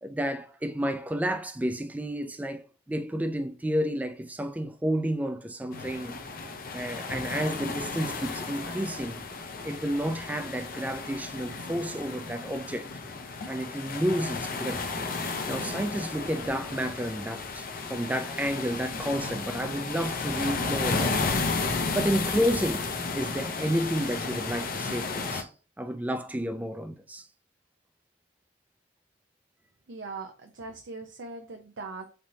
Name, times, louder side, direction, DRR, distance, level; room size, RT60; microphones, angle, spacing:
voice 1, 0.0-6.2 6.7-9.2 9.6-12.9 13.5-14.9 15.1-21.3 21.9-25.5 25.8-27.3, equal, 10° right, 0.3 m, -31 dB
sound 1, 5.7-25.4, left 4 dB, 50° left, 0.6 m, -33 dB
voice 2, 29.9-32.1, right 3 dB, 70° right, 0.6 m, -40 dB
3.9 x 3.3 x 2.7 m
head